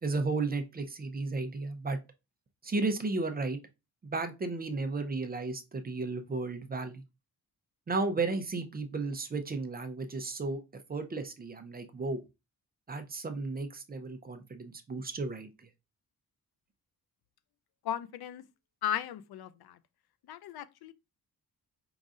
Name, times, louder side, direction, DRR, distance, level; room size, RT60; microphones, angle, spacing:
voice 1, 0.0-2.0 2.6-3.6 4.0-7.0 7.9-10.6 10.9-12.2 12.9-15.5, right 3 dB, 25° right, 0.5 m, -34 dB
voice 2, 17.8-18.4 18.8-19.8 20.3-20.9, left 10 dB, 80° left, 0.5 m, -36 dB
5.0 x 3.8 x 2.4 m
wide cardioid pair, 170°, 37 cm